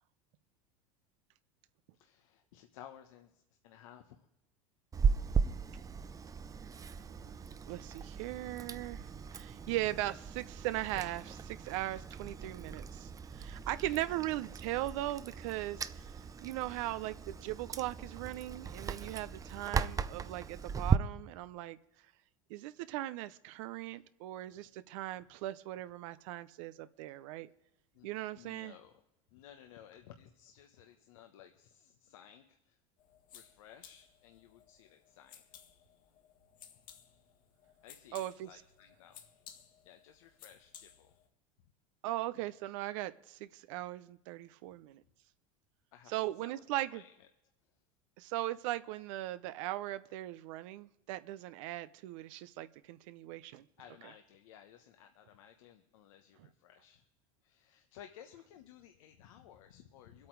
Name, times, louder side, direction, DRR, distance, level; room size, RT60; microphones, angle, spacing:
voice 1, 1.9-4.2 8.9-9.1 9.6-9.7 13.9-14.0 16.7-16.9 23.8-24.0 24.4-24.7 27.9-28.1 28.3-29.0 29.3-32.8 33.3-35.4 37.8-39.2 39.8-41.1 45.9-46.6 46.9-47.3 53.8-57.1 57.4-60.3, left 10 dB, 80° left, 6 dB, 1.1 m, -57 dB
Chewing mastication, 4.9-21.0, right 6 dB, 20° right, 0.6 m, -37 dB
voice 2, 7.7-16.1 16.4-21.8 22.5-27.5 28.0-28.7 38.1-38.5 42.0-45.0 46.1-47.0 48.2-53.6, right 15 dB, 70° right, 13 dB, 0.7 m, -39 dB
sound 1, 33.0-41.3, left 9 dB, 55° left, 1.8 m, -58 dB
23.0 x 8.5 x 4.6 m, 0.86 s
supercardioid pair, 110°, 17 cm